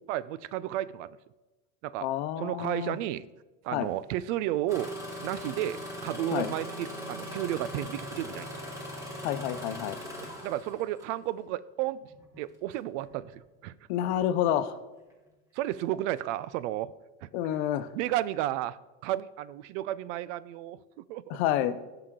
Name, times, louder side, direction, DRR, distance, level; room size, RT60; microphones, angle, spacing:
voice 1, 0.1-1.2 1.8-2.1 2.4-3.2 3.6-4.9 5.2-8.6 10.2-12.1 12.4-13.7 15.5-16.9 17.2-17.3 17.9-21.4, right 13 dB, 80° right, 18 dB, 0.6 m, -33 dB
voice 2, 2.0-3.0 3.7-3.9 6.3-6.5 9.2-10.0 13.9-14.8 17.3-17.9 21.3-21.8, left 11 dB, 65° left, 11 dB, 0.8 m, -29 dB
Engine starting, 4.7-11.1 12.1-12.4 13.0-13.4 14.0-14.2, equal, 10° right, 1.2 m, -40 dB
17.0 x 5.9 x 3.7 m, 1.1 s
cardioid pair, 170°, 36 cm